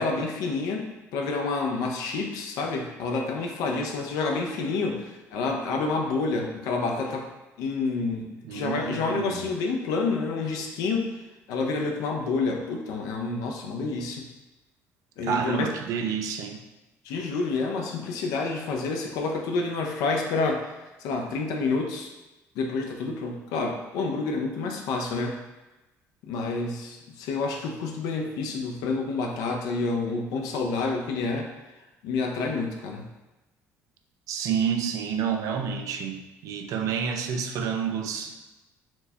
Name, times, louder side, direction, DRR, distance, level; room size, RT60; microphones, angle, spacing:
voice 1, 0.0-7.3 7.6-11.1 11.5-14.3 15.2-15.7 17.0-20.6 21.0-22.1 22.6-25.4 26.3-31.5 32.0-33.1, left 3 dB, 80° left, 2 dB, 0.5 m, -28 dB
voice 2, 8.5-9.4 15.2-16.6 34.3-38.4, right 7 dB, 70° right, 5 dB, 0.4 m, -29 dB
4.4 x 2.1 x 2.8 m, 1.1 s
supercardioid pair, 85°, 6 cm